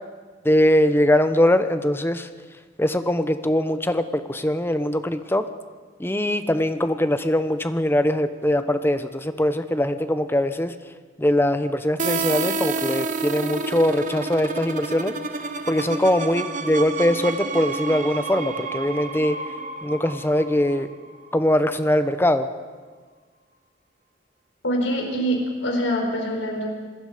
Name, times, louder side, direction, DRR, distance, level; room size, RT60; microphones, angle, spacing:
voice 1, 0.4-2.3 2.8-5.5 6.0-10.7 11.2-15.1 15.6-19.4 19.8-20.9 21.3-22.5, left 1 dB, 10° left, 10 dB, 0.9 m, -21 dB
sound 1, 12.0-21.6, right 4 dB, 40° right, 1.3 m, -30 dB
voice 2, 24.6-26.7, equal, 85° left, 1 dB, 4.6 m, -24 dB
26.5 x 21.0 x 5.1 m, 1.4 s
head